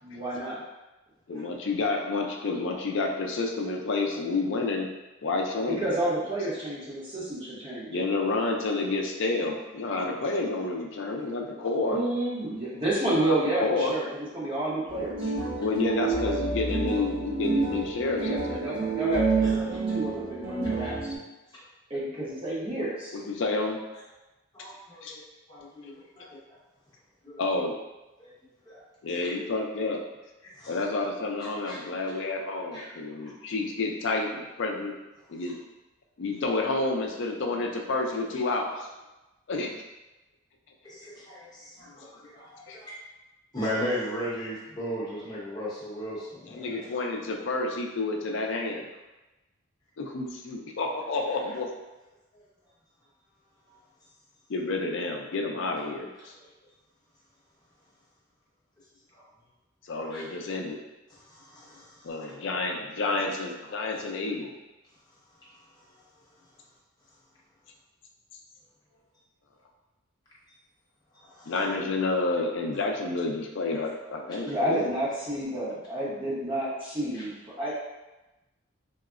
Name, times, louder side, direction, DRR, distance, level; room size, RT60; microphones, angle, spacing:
voice 1, 0.0-0.6 5.8-7.9 11.9-15.1 18.0-21.1 21.9-23.1 74.4-77.7, right 1 dB, 25° right, -7 dB, 0.7 m, -30 dB
voice 2, 1.3-4.9 5.2-5.8 7.9-12.0 13.3-14.0 15.6-18.7 23.1-23.8 25.0-25.1 27.4-27.8 29.0-30.0 30.7-34.9 35.3-35.6 36.2-38.9 39.5-39.8 41.9-42.0 42.7-42.8 46.5-48.9 50.0-51.7 54.5-56.3 59.9-60.8 62.0-64.5 71.5-74.9, left 3 dB, 60° left, 1 dB, 0.4 m, -29 dB
sound 1, 14.9-21.2, right 4 dB, 75° right, 1.3 m, -29 dB
voice 3, 24.5-25.2 25.5-26.4 27.2-27.4 28.2-28.3 28.7-28.8 30.4-30.8 31.7-31.8 32.7-32.9 40.8-42.9 43.5-46.8 59.1-59.2 60.1-60.2 61.3-61.9 71.3-71.5 77.1-77.2, equal, 20° left, -9 dB, 0.8 m, -36 dB
3.5 x 2.0 x 2.4 m, 1.1 s
head